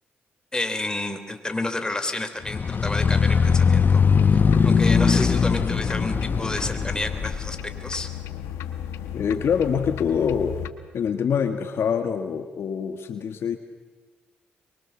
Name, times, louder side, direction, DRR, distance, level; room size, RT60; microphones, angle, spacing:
voice 1, 0.5-4.0 4.3-7.6 7.8-8.1, left 2 dB, 20° left, 8 dB, 3.5 m, -30 dB
sound 1, 2.5-7.4, left 5 dB, 45° left, 1.2 m, -20 dB
sound 2, 3.9-10.7, left 9 dB, 85° left, 1.2 m, -35 dB
voice 2, 9.1-10.6 10.9-13.6, left 7 dB, 70° left, 8 dB, 1.5 m, -25 dB
23.5 x 23.5 x 7.1 m, 1.3 s
supercardioid pair, 50°, 4 cm